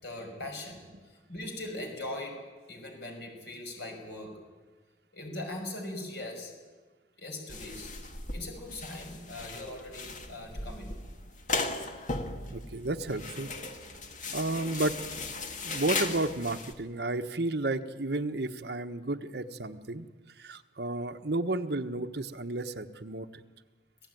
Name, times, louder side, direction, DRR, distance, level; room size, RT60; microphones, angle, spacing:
voice 1, 0.0-0.8 1.1-2.4 2.7-4.3 5.1-6.5 7.2-7.9 8.3-10.9, left 1 dB, 75° left, 2 dB, 5.7 m, -40 dB
sound 1, 7.5-16.7, left 3 dB, 45° left, 1.9 m, -37 dB
voice 2, 12.5-13.5 14.3-15.0 15.6-20.1 20.4-23.3, right 2 dB, 65° right, 6 dB, 1.2 m, -32 dB
26.0 x 16.5 x 9.3 m, 1.3 s
head